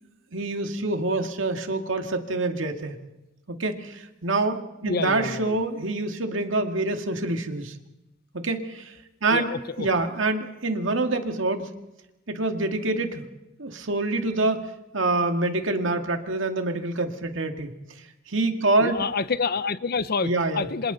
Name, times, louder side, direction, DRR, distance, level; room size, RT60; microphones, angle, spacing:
voice 1, 0.3-3.0 3.5-7.7 8.3-8.9 9.2-11.7 12.3-13.2 13.6-14.7 14.9-17.7 18.3-19.0 20.2-20.7, right 2 dB, 85° right, 5 dB, 2.1 m, -26 dB
voice 2, 4.8-5.6 9.3-9.9 18.8-20.9, left 4 dB, 55° left, 15 dB, 0.8 m, -28 dB
27.0 x 26.5 x 4.1 m, 0.98 s
head